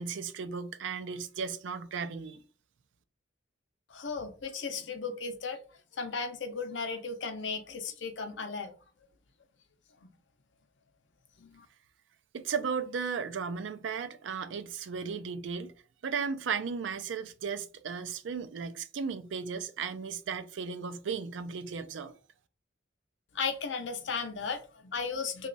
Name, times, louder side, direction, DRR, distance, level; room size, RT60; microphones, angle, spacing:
voice 1, 0.0-2.4 12.3-15.7 16.0-22.1, right 6 dB, 85° right, 0.4 m, -35 dB
voice 2, 3.9-5.6 6.0-8.7 11.4-11.7 23.3-25.5, left 5 dB, 80° left, 0.6 m, -35 dB
3.0 x 2.3 x 3.9 m
head